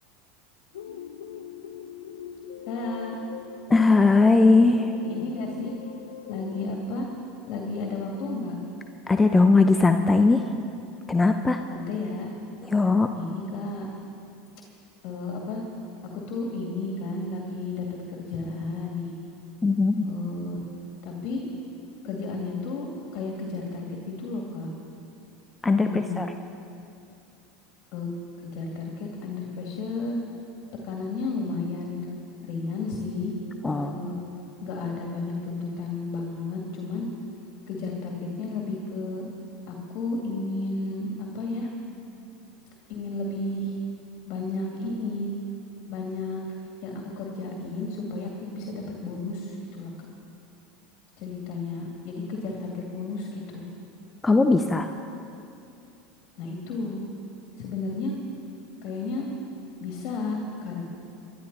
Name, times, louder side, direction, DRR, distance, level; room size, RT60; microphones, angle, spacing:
sound 1, 0.7-6.7, left 8 dB, 75° left, 0.8 m, -42 dB
voice 1, 2.7-3.2 5.0-5.7 6.3-7.0 7.5-8.6 11.7-12.3 13.2-13.9 15.0-15.6 16.1-19.1 20.0-20.6 21.0-21.4 22.0-24.7 25.8-26.3 27.9-28.1 28.4-30.2 30.8-32.0 32.4-33.3 33.7-34.2 34.6-37.1 37.7-39.3 39.7-41.7 42.9-43.8 44.3-45.3 45.9-46.4 46.8-49.9 51.2-53.7 56.4-57.0 57.6-58.1 58.8-59.3 59.8-60.8, left 3 dB, 55° left, 0 dB, 2.2 m, -32 dB
voice 2, 3.7-4.9 9.1-10.5 11.1-11.6 12.6-13.1 19.6-20.1 25.6-26.3 33.6-34.0 54.2-54.9, left 3 dB, 15° left, 7 dB, 0.7 m, -19 dB
23.5 x 12.0 x 4.1 m, 2.7 s
hypercardioid pair, 80°, 0 cm